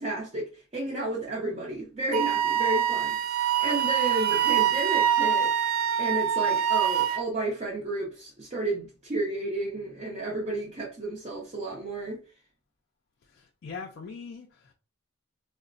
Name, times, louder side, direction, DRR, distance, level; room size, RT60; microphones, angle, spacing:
voice 1, 0.0-5.5 6.0-12.2, right 1 dB, 30° right, 0.6 m, -32 dB
Wind instrument woodwind instrument, 2.1-7.2, right 9 dB, 80° right, 0.3 m, -25 dB
voice 2, 13.2-14.7, left 5 dB, 50° left, 0.3 m, -42 dB
3.8 x 2.1 x 2.5 m
head